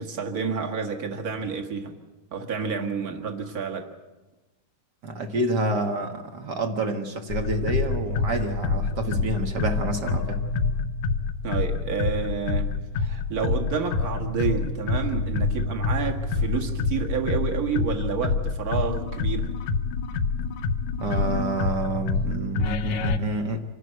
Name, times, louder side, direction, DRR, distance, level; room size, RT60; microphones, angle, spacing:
voice 1, 0.0-1.9 2.3-3.9 11.4-19.5, right 6 dB, 35° right, 3 dB, 1.7 m, -29 dB
voice 2, 5.0-10.4 21.0-23.6, right 2 dB, 55° right, 5 dB, 1.2 m, -28 dB
sound 1, 7.3-23.2, left 4 dB, 70° left, 2.1 m, -27 dB
26.5 x 12.5 x 9.3 m, 1.2 s
omnidirectional pair, 3.8 m